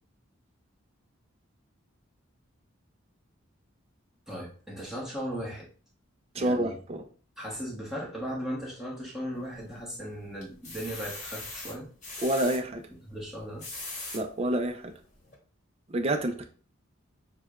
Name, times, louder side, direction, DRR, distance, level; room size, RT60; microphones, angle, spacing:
voice 1, 4.3-5.7 6.3-6.7 7.4-11.9 13.0-13.6, equal, 5° right, -6 dB, 0.9 m, -37 dB
voice 2, 6.3-7.1 12.2-12.9 14.1-14.9 15.9-16.5, right 1 dB, 30° right, 6 dB, 0.4 m, -28 dB
sound 1, 9.3-9.9 10.4-12.6 13.4-14.2 14.8-14.9 15.3-15.4, left 2 dB, 35° left, 1.0 m, -40 dB
6.4 x 2.2 x 2.3 m, 0.40 s
head